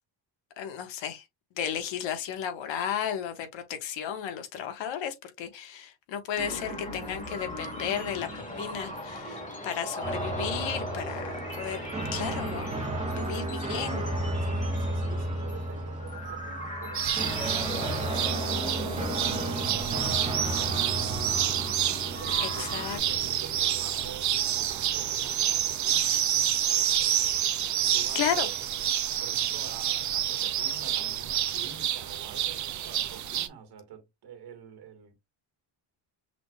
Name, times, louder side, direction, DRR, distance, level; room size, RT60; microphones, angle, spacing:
voice 1, 0.6-1.2 1.6-11.8 12.1-12.7 13.1-14.0 22.4-23.0 28.1-28.5, left 9 dB, 75° left, 1.5 m, -34 dB
sound 1, 6.4-23.0, left 1 dB, 15° left, 1.6 m, -39 dB
sound 2, 10.0-25.9, right 1 dB, 15° right, 1.0 m, -34 dB
voice 2, 13.1-21.4 22.2-26.2 27.8-28.6 29.0-35.1, right 7 dB, 55° right, 1.9 m, -47 dB
sound 3, 16.9-33.5, right 11 dB, 40° right, 0.6 m, -28 dB
5.8 x 3.2 x 2.3 m
cardioid pair, 150°, 45 cm